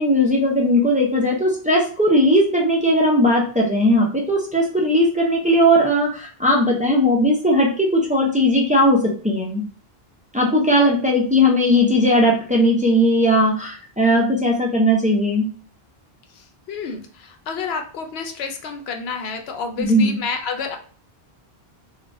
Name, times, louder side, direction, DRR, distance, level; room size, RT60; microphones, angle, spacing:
voice 1, 0.0-9.6 10.3-15.5 19.8-20.2, equal, 15° right, -2 dB, 0.3 m, -18 dB
voice 2, 16.3-20.8, left 5 dB, 85° left, 5 dB, 0.8 m, -30 dB
3.3 x 2.2 x 2.5 m, 0.42 s
omnidirectional pair, 1.0 m